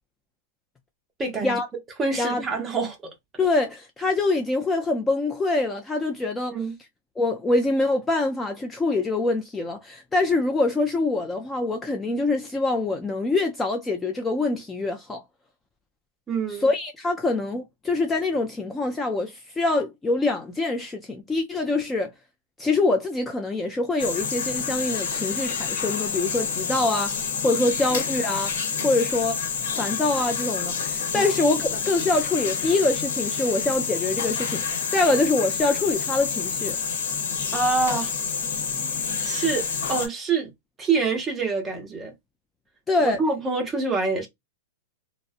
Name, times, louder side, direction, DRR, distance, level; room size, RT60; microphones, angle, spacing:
voice 1, 1.2-1.6 2.0-3.0 6.5-6.7 16.3-16.7 27.5-27.6 31.1-31.3 37.5-38.1 39.2-40.5 40.8-42.1 43.0-44.3, right 4 dB, 15° right, 0.7 m, -26 dB
voice 2, 3.4-6.6 7.2-15.2 16.6-22.1 22.6-29.4 29.7-36.8 42.9-43.2, left 2 dB, 10° left, 0.4 m, -25 dB
sound 1, 24.0-40.1, left 6 dB, 75° left, 0.9 m, -28 dB
2.5 x 2.0 x 2.4 m
hypercardioid pair, 145°, 0 cm